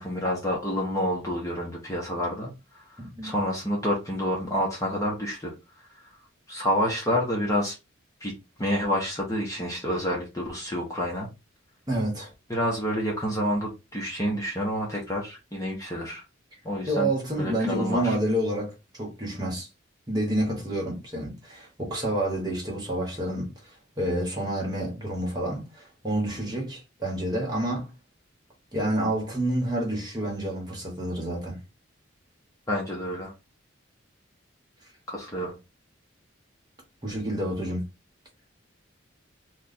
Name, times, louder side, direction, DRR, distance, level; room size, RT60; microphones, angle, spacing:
voice 1, 0.0-5.9 6.5-7.7 8.2-8.3 8.6-11.3 12.5-16.2 16.6-17.1 17.4-18.2 32.7-33.3 35.1-35.5, equal, 15° left, 0.8 m, -28 dB
voice 2, 3.0-3.3 11.9-12.3 16.9-19.7 20.1-23.5 24.0-27.9 28.7-31.6 37.0-37.8, right 1 dB, 20° right, 1.3 m, -29 dB
3.1 x 2.3 x 4.0 m
head